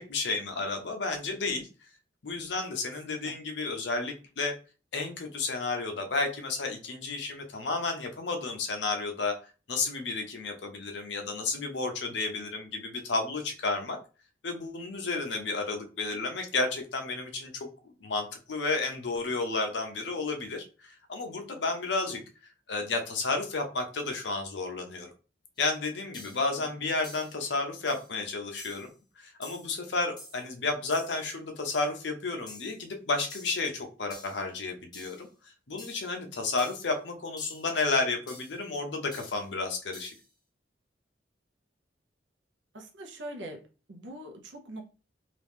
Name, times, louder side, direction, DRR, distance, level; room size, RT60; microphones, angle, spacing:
voice 1, 0.0-1.7 2.2-4.5 4.9-9.3 9.7-14.0 14.4-17.7 18.0-22.2 22.7-25.1 25.6-28.9 29.2-35.3 35.7-40.1, left 3 dB, 75° left, 5 dB, 0.7 m, -32 dB
voice 2, 3.1-3.4 26.5-26.7 42.7-43.6 43.9-44.8, right 1 dB, 85° right, 3 dB, 0.8 m, -43 dB
sound 1, 25.6-25.7 26.1-26.5 27.0-27.4 27.9-28.1 28.6-28.9 29.4-29.7 30.2-30.5 30.9-31.2 31.7-31.9 32.5-32.8 33.3-33.6 34.1-34.4 34.9-35.2 35.8-36.1 36.6-36.9 37.4-37.7 38.3-38.6 39.1-39.5 39.9-40.3, left 2 dB, 25° left, 0.9 m, -48 dB
2.9 x 2.4 x 3.5 m, 0.34 s
head